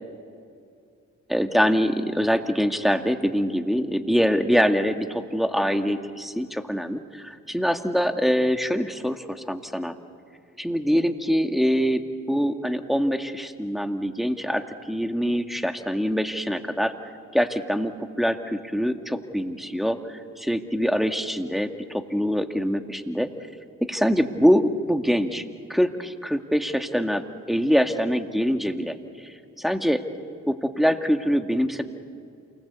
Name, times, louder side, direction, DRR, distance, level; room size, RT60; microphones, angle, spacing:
voice 1, 1.3-9.9 10.6-12.0 12.3-16.9 17.3-17.9 18.2-23.3 23.8-25.4 25.7-30.0 30.5-31.8, equal, ahead, 6 dB, 2.0 m, -24 dB
28.5 x 20.0 x 8.4 m, 2.4 s
cardioid pair, 45°, 32 cm